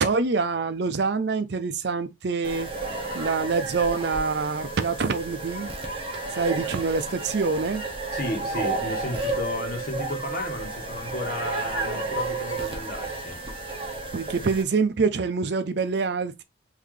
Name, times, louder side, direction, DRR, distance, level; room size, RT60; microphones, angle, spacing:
voice 1, 0.0-2.7 3.1-5.7 6.3-7.8 14.1-16.4, right 4 dB, 60° right, 0.5 m, -25 dB
sound 1, 2.4-14.6, right 3 dB, 30° right, 0.9 m, -32 dB
voice 2, 8.1-13.4, left 1 dB, 50° left, 1.2 m, -33 dB
3.9 x 2.7 x 3.1 m
head